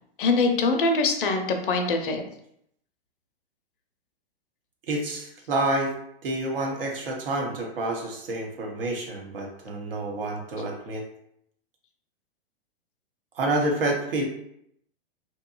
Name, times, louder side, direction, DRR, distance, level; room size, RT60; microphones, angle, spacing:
voice 1, 0.2-2.2, left 3 dB, 60° left, 4 dB, 0.5 m, -23 dB
voice 2, 4.9-5.9 6.2-11.1 13.3-14.2, right 2 dB, 65° right, 0 dB, 0.8 m, -28 dB
2.8 x 2.2 x 2.3 m, 0.73 s
hypercardioid pair, 110°, 30 cm